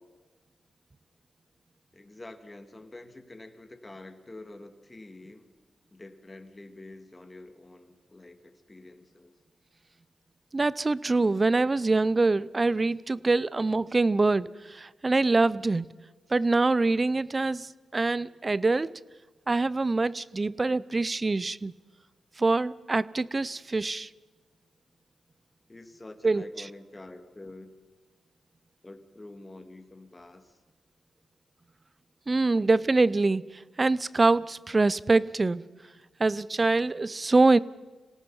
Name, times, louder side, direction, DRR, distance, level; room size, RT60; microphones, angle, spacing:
voice 1, 1.9-5.5 5.9-9.4 25.7-27.8 28.8-30.6, left 2 dB, 25° left, 2.0 m, -47 dB
voice 2, 10.5-15.9 16.3-19.0 19.5-21.7 22.4-24.1 26.2-26.4 32.3-35.6 36.2-37.6, right 3 dB, 35° right, 0.6 m, -24 dB
26.5 x 18.0 x 5.6 m
cardioid pair, 55°, 0 cm